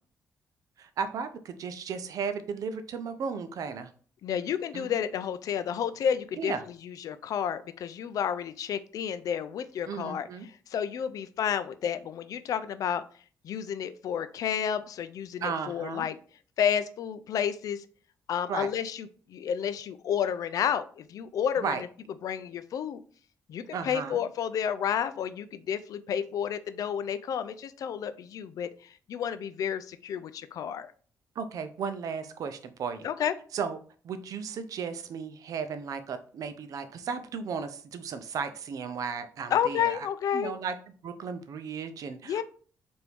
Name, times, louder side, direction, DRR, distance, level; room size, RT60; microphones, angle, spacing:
voice 1, 0.8-3.9 4.7-4.9 6.4-6.6 9.9-10.5 15.4-16.1 18.5-18.7 21.6-21.8 23.7-24.2 31.4-33.1 33.5-33.8 34.0-40.1 40.3-40.7 41.0-42.4, right 6 dB, 65° right, 10 dB, 0.5 m, -35 dB
voice 2, 4.2-6.5 6.8-13.0 13.4-16.2 16.6-17.9 18.3-21.9 22.2-23.0 23.5-30.9 33.0-33.3 39.5-40.5 42.2-42.4, left 8 dB, 65° left, 12 dB, 0.3 m, -31 dB
4.5 x 2.6 x 3.4 m, 0.43 s
cardioid pair, 105°, 6 cm